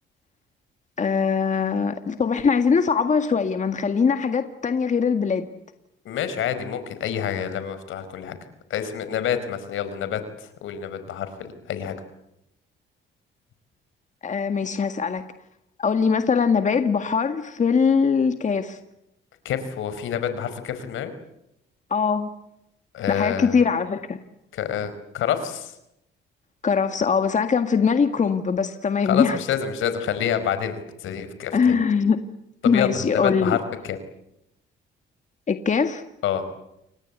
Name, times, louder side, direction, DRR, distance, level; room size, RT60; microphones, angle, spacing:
voice 1, 1.0-5.5 14.2-15.3 15.8-18.8 21.9-22.3 23.1-24.2 26.6-29.4 31.5-32.2 32.7-33.6 35.5-36.0, left 5 dB, 40° left, 8 dB, 1.8 m, -22 dB
voice 2, 6.0-8.4 8.7-11.9 19.4-21.1 22.9-23.6 24.5-25.7 29.0-31.7 32.6-34.0 36.2-36.4, left 9 dB, 80° left, 11 dB, 4.6 m, -27 dB
29.0 x 24.5 x 8.2 m, 0.84 s
cardioid pair, 90°, 20 cm